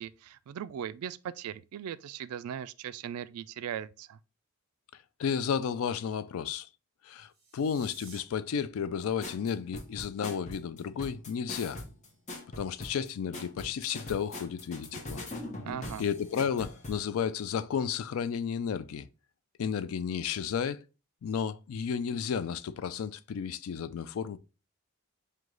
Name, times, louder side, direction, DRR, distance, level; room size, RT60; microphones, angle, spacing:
voice 1, 0.0-4.2 15.6-16.0, right 9 dB, 80° right, 0.3 m, -39 dB
voice 2, 5.2-6.7 7.0-11.8 12.6-15.2 16.0-19.1 19.6-20.8 21.2-24.4, left 7 dB, 70° left, 0.3 m, -32 dB
sound 1, 7.2-8.2, right 4 dB, 25° right, 1.2 m, -52 dB
sound 2, 9.2-17.0, left 1 dB, 30° left, 0.8 m, -42 dB
4.7 x 2.2 x 3.7 m
head